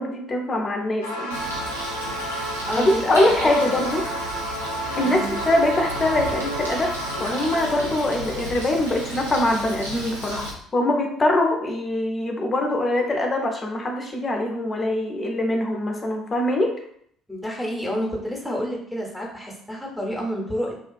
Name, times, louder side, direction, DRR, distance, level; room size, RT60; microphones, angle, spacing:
voice 1, 0.0-1.4 2.8-4.1 5.0-6.9 7.2-16.7, left 1 dB, 30° left, 3 dB, 0.5 m, -23 dB
sound 1, 1.0-8.4, right 1 dB, 85° left, 0.4 m, -31 dB
Bird, 1.3-10.5, right 1 dB, 85° right, 0.5 m, -34 dB
voice 2, 2.7-3.8 5.0-5.4 17.3-20.7, equal, ahead, -1 dB, 0.8 m, -29 dB
2.4 x 2.3 x 2.3 m, 0.66 s
figure-of-eight pair, 55°, 0 cm